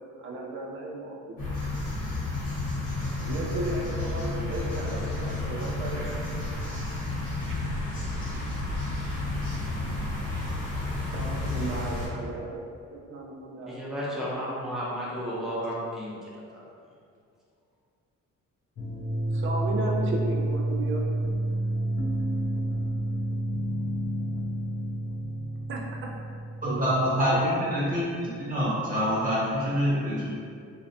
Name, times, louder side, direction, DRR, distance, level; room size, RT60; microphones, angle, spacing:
voice 1, 0.2-1.7 3.2-6.9 11.1-13.8 19.3-21.0 25.7-25.8 26.6-26.9 27.3-27.8, right 2 dB, 45° right, -1 dB, 0.5 m, -35 dB
sound 1, 1.4-12.1, left 2 dB, 85° left, 1.0 m, -31 dB
voice 2, 13.7-16.6, equal, ahead, -8 dB, 0.6 m, -33 dB
sound 2, 18.8-27.5, right 1 dB, 50° left, 0.5 m, -30 dB
voice 3, 26.6-27.3 27.7-30.3, equal, 30° right, -8 dB, 0.9 m, -26 dB
2.4 x 2.1 x 2.6 m, 2.3 s
cardioid pair, 90°, 30 cm